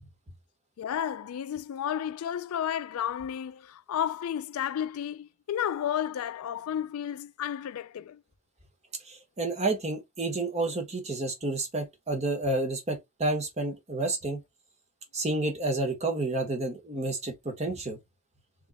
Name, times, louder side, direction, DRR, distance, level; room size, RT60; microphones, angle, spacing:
voice 1, 0.8-8.2, left 9 dB, 75° left, 0.3 m, -32 dB
voice 2, 9.0-14.4 15.1-18.0, right 2 dB, 30° right, 1.3 m, -30 dB
3.4 x 3.2 x 3.8 m
head